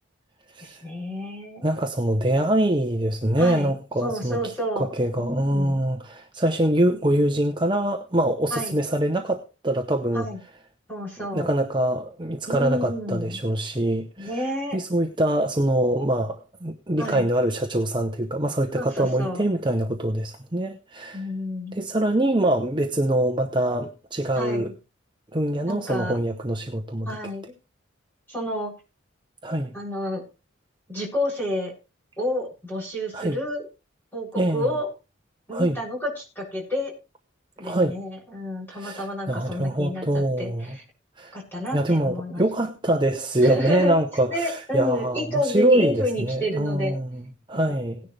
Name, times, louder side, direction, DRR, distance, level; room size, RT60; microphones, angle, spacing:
voice 1, 0.6-1.6 3.4-4.9 5.2-5.8 8.5-8.8 10.1-10.4 10.9-11.5 12.5-13.4 14.2-14.8 17.0-17.3 18.8-19.4 21.1-21.8 24.3-24.7 25.6-26.2 27.0-27.5 28.3-28.7 29.7-30.2 30.9-31.7 32.2-33.7 34.1-34.9 35.5-36.9 37.6-40.8 41.3-42.4 43.4-43.9 44.3-46.9, left 1 dB, 10° left, -3 dB, 7.4 m, -30 dB
voice 2, 1.6-10.3 11.3-14.3 14.7-21.2 21.7-24.7 25.3-27.1 29.4-29.7 33.1-33.4 34.4-34.7 35.5-35.8 37.6-38.0 38.7-40.8 41.2-41.4 41.7-48.0, right 1 dB, 25° right, 4 dB, 0.9 m, -24 dB
17.5 x 10.5 x 3.4 m, 0.31 s
head